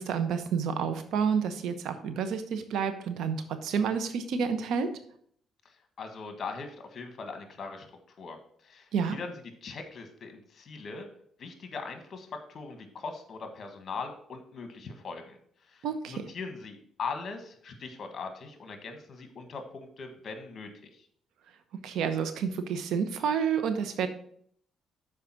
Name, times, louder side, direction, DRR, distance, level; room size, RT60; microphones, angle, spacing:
voice 1, 0.0-4.9 8.9-9.2 15.8-16.2 21.8-24.1, right 6 dB, 80° right, 9 dB, 0.9 m, -29 dB
voice 2, 6.0-7.9 8.2-8.4 8.6-9.3 9.6-11.1 11.4-15.4 15.7-20.7, left 4 dB, 50° left, 6 dB, 1.4 m, -40 dB
6.7 x 4.8 x 5.9 m, 0.63 s
cardioid pair, 90°, 0 cm